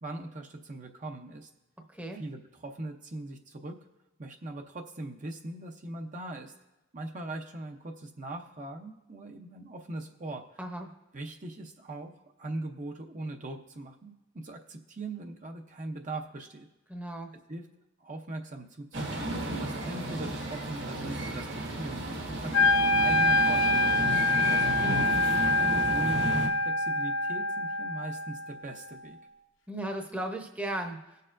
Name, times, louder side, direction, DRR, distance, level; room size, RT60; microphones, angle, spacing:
voice 1, 0.0-1.5 2.1-3.8 4.2-6.5 6.9-10.4 11.1-16.7 17.5-17.7 18.0-24.8 25.7-29.2, right 2 dB, 40° right, 3 dB, 0.7 m, -40 dB
voice 2, 1.9-2.2 10.6-10.9 16.9-17.3 24.8-25.2 29.7-31.0, right 1 dB, 5° right, 3 dB, 0.8 m, -36 dB
sound 1, 18.9-26.5, right 1 dB, 65° right, 1.8 m, -34 dB
Wind instrument woodwind instrument, 22.5-28.6, left 2 dB, 70° left, 0.7 m, -25 dB
19.5 x 6.7 x 2.6 m, 0.98 s
head